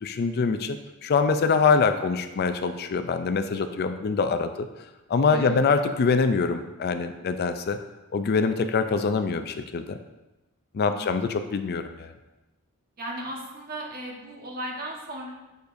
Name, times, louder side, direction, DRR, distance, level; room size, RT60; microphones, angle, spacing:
voice 1, 0.0-4.7 5.1-7.8 8.1-10.0 10.7-12.1, left 5 dB, 50° left, 8 dB, 0.4 m, -24 dB
voice 2, 13.0-15.3, right 1 dB, 45° right, -1 dB, 1.2 m, -36 dB
7.0 x 6.5 x 2.6 m, 1.0 s
head